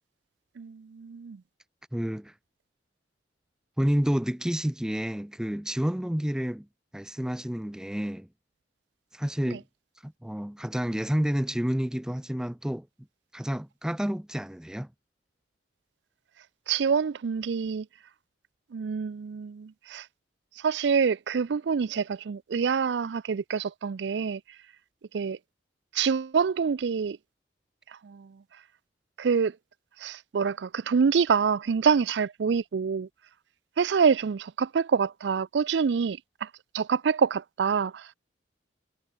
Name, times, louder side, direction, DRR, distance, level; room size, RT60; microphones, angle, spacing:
voice 1, 0.6-1.4 9.5-9.6 16.7-17.9 18.7-20.1 20.6-24.4 25.1-25.4 25.9-27.2 28.0-28.4 29.2-29.6 30.0-33.1 33.8-36.5 36.7-38.1, right 6 dB, 70° right, 0.4 m, -26 dB
voice 2, 1.9-2.3 3.8-6.7 6.9-8.3 9.1-9.6 10.0-12.9 13.3-14.9, equal, 5° right, 0.4 m, -29 dB
head